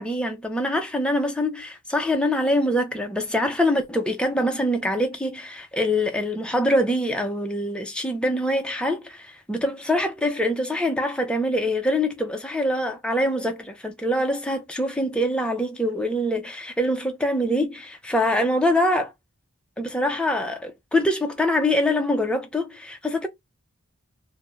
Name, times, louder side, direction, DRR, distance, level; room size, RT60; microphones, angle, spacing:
voice 1, 0.0-19.1 19.8-23.3, left 1 dB, 5° left, 0.4 m, -24 dB
2.4 x 2.0 x 3.1 m
head